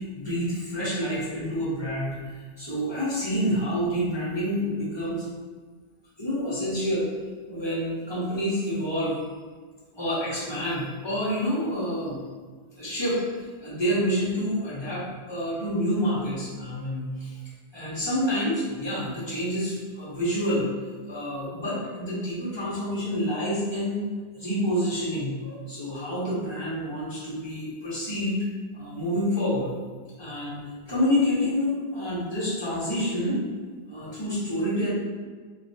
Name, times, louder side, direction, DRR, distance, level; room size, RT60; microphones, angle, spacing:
voice 1, 0.0-5.2 6.2-7.1 7.5-9.2 9.9-12.2 12.7-13.2 13.6-17.4 17.7-20.7 21.1-24.0 24.3-28.5 28.7-29.7 30.2-30.6 30.8-33.4 33.9-34.9, equal, 25° left, -9 dB, 1.1 m, -28 dB
3.1 x 2.9 x 2.7 m, 1.5 s
omnidirectional pair, 1.0 m